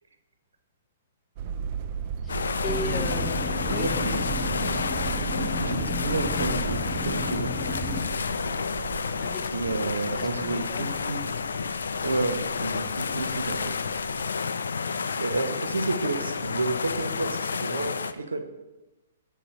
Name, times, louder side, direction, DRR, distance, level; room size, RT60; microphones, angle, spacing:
sound 1, 1.4-14.3, right 7 dB, 45° right, 0.3 m, -36 dB
voice 1, 2.2-3.9 9.2-9.6 10.1-10.9, left 2 dB, 15° left, 5 dB, 0.5 m, -37 dB
sound 2, 2.3-18.1, left 5 dB, 70° left, 0.3 m, -30 dB
sound 3, 2.7-8.0, left 3 dB, ahead, 1.0 m, -33 dB
voice 2, 3.7-4.8 5.4-7.5 9.5-11.2 12.0-13.7 15.2-18.4, right 3 dB, 75° right, 6 dB, 0.7 m, -31 dB
9.2 x 3.9 x 3.0 m, 1.0 s
figure-of-eight pair, 115°, 0 cm